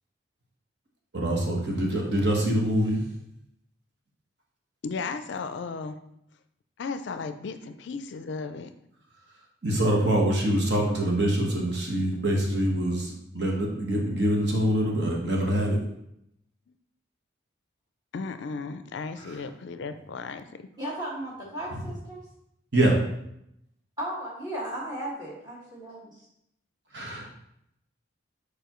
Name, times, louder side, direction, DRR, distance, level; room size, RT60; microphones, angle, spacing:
voice 1, 1.1-3.1 9.6-15.8 19.2-19.3 21.7-21.8 22.7-23.0 26.9-27.3, right 1 dB, 55° right, -1 dB, 1.2 m, -25 dB
voice 2, 4.8-6.0 6.8-8.7 18.1-20.7, left 4 dB, 60° left, 9 dB, 0.4 m, -35 dB
voice 3, 20.8-22.2 24.0-26.0, right 1 dB, 20° right, -5 dB, 1.8 m, -35 dB
6.8 x 4.8 x 3.0 m, 0.78 s
head